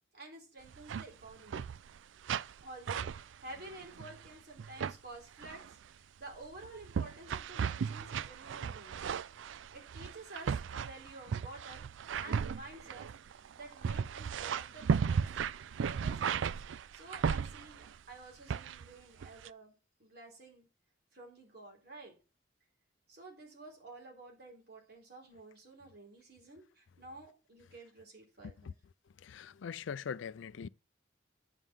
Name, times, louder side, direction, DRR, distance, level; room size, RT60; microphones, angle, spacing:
voice 1, 0.1-1.7 2.6-9.0 9.7-11.8 12.2-16.6 16.9-20.7 21.1-22.1 23.1-28.7, right 2 dB, 55° right, 3.9 m, -51 dB
sound 1, 0.6-1.1 1.3-2.0 2.2-2.6 2.9-4.3 4.6-5.0 5.4-5.7 6.3-18.0 18.5-18.9 19.2-19.5, right 6 dB, 75° right, 0.4 m, -36 dB
voice 2, 29.2-30.7, left 6 dB, 80° left, 0.4 m, -42 dB
9.1 x 5.6 x 6.2 m
head